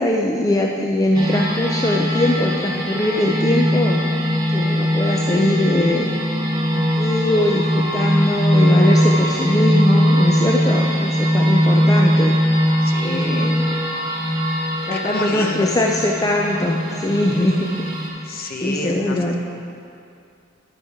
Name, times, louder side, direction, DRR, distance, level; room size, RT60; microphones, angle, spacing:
voice 1, 0.0-4.0 4.5-6.1 6.7-12.4 13.0-13.6 14.8-17.7 18.3-19.4, left 1 dB, 15° left, 0 dB, 0.4 m, -21 dB
sound 1, 1.1-18.1, equal, 20° right, 1.0 m, -20 dB
voice 2, 12.8-13.6 14.9-15.9 18.3-19.4, left 2 dB, 45° left, 3 dB, 0.7 m, -29 dB
10.5 x 6.4 x 4.7 m, 2.5 s
head